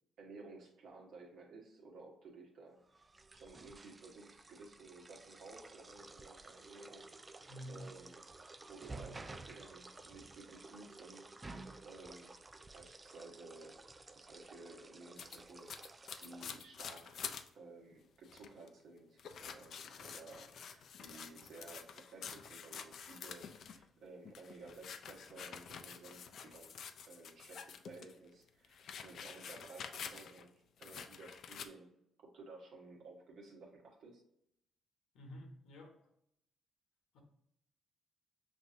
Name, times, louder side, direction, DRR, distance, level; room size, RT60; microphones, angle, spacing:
voice 1, 0.2-2.8 3.3-7.1 7.7-8.2 8.7-12.4 12.7-13.8 14.1-15.9 16.2-17.3 17.5-30.5 30.8-34.2, right 3 dB, 75° right, 1.3 m, -55 dB
sound 1, 2.9-16.5, right 3 dB, 20° right, 0.3 m, -53 dB
voice 2, 7.5-7.9 35.1-35.9 37.1-37.2, equal, 85° left, 1.1 m, -49 dB
sound 2, 15.2-17.5 17.9-18.0 18.2-18.7 19.2-23.8 24.2-28.1 28.5-30.5 30.8-31.7, left 7 dB, 65° left, 0.4 m, -48 dB
6.0 x 2.7 x 2.6 m
cardioid pair, 90°, 0 cm